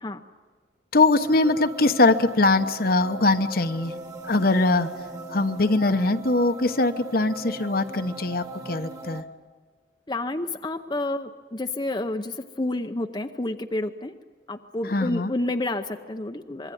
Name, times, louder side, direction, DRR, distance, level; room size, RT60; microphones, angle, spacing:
voice 1, 0.9-3.9 4.2-4.9 5.3-9.2 14.9-15.3, left 2 dB, 55° left, 9 dB, 1.0 m, -22 dB
sound 1, 1.2-9.2, right 2 dB, 20° right, 1.5 m, -39 dB
voice 2, 10.1-14.1 14.5-16.7, left 2 dB, 25° left, 6 dB, 0.8 m, -29 dB
25.5 x 22.0 x 9.4 m, 1.5 s
head